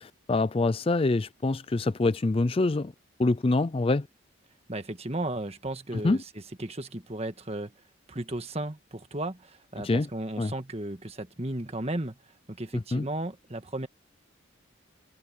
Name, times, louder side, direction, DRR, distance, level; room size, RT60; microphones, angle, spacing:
voice 1, 0.0-2.9 3.2-4.1 6.0-6.2 9.8-10.1 10.4-10.5 12.7-13.0, left 2 dB, 25° left, 0.4 m, -25 dB
voice 2, 4.7-6.3 6.6-7.7 8.1-12.2 12.5-13.9, right 1 dB, 30° right, 1.6 m, -34 dB
head